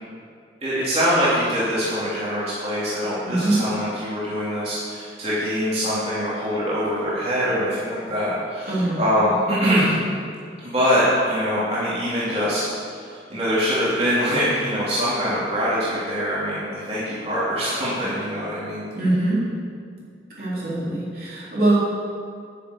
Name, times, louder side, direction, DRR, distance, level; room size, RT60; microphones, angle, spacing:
voice 1, 0.6-9.9 10.6-13.0 13.3-18.8, equal, 35° right, -10 dB, 3.2 m, -23 dB
voice 2, 3.3-3.6 8.7-9.0 18.9-19.4 20.4-21.8, right 2 dB, 55° right, -8 dB, 3.7 m, -22 dB
10.0 x 7.3 x 8.4 m, 2.2 s
head